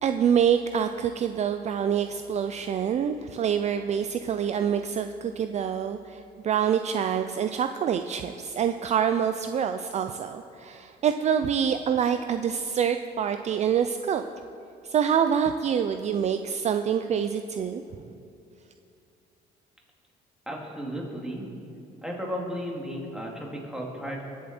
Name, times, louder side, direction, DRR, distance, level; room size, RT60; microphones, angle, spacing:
voice 1, 0.0-14.2 14.8-17.8, right 8 dB, 40° right, 8 dB, 0.4 m, -26 dB
voice 2, 20.5-21.5 22.0-24.2, equal, 5° right, -2 dB, 2.6 m, -34 dB
21.0 x 7.3 x 4.4 m, 2.6 s
cardioid pair, 110°, 17 cm